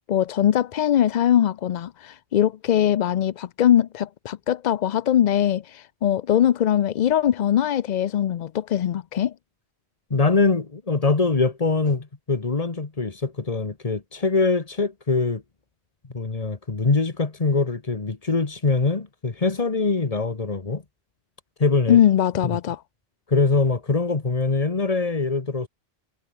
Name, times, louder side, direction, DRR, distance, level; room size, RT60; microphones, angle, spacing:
voice 1, 0.1-9.3 21.9-22.8, left 10 dB, 55° left, 0.5 m, -21 dB
voice 2, 10.1-15.4 16.1-20.8 21.6-22.0 22.5-22.6 23.3-25.7, left 3 dB, 35° left, 1.5 m, -23 dB
omnidirectional pair, 1.1 m